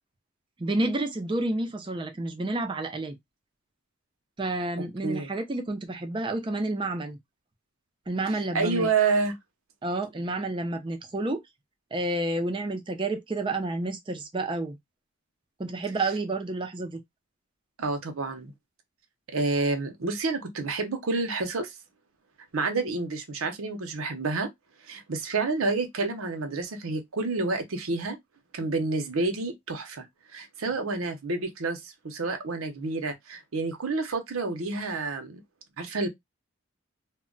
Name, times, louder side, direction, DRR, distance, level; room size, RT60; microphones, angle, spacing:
voice 1, 0.6-3.2 4.4-7.2 8.1-8.9 9.8-11.4 11.9-14.8 15.6-17.0, right 2 dB, 25° right, 0.5 m, -30 dB
voice 2, 8.5-9.4 17.8-18.5 19.3-21.7 22.5-24.5 24.9-28.2 28.5-30.1 30.3-35.4 35.8-36.1, right 3 dB, 80° right, 0.7 m, -29 dB
2.2 x 2.1 x 3.8 m
head